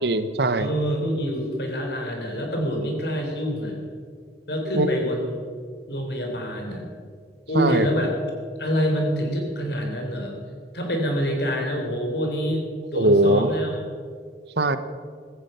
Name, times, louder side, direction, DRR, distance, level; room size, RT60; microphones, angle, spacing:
voice 1, 0.0-0.7 4.7-4.9 7.5-7.9 13.0-13.5 14.6-14.8, right 1 dB, 65° right, 12 dB, 0.9 m, -20 dB
voice 2, 0.6-3.8 4.5-5.4 5.9-6.9 7.5-8.1 8.6-10.4 10.7-12.6 12.9-13.8, equal, 65° left, 2 dB, 3.7 m, -26 dB
16.0 x 14.0 x 5.6 m, 2.1 s
head